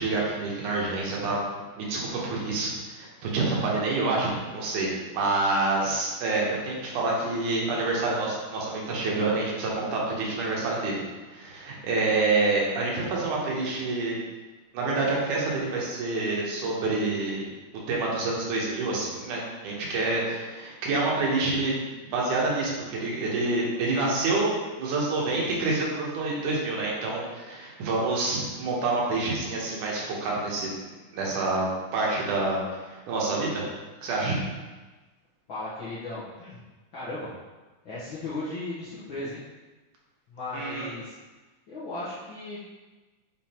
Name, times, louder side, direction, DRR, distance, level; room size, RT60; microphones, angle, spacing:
voice 1, 0.0-1.4 1.8-4.9 5.1-11.0 11.3-14.2 14.7-17.5 17.9-21.8 22.1-24.5 24.8-30.7 31.1-31.7 31.9-33.7 34.0-34.4 40.5-40.9, right 3 dB, 75° right, -4 dB, 2.7 m, -27 dB
voice 2, 35.5-36.6 36.9-37.3 37.8-39.4 40.3-41.1 41.7-42.8, left 2 dB, 55° left, -10 dB, 1.4 m, -36 dB
6.1 x 3.7 x 4.4 m, 1.2 s
omnidirectional pair, 3.6 m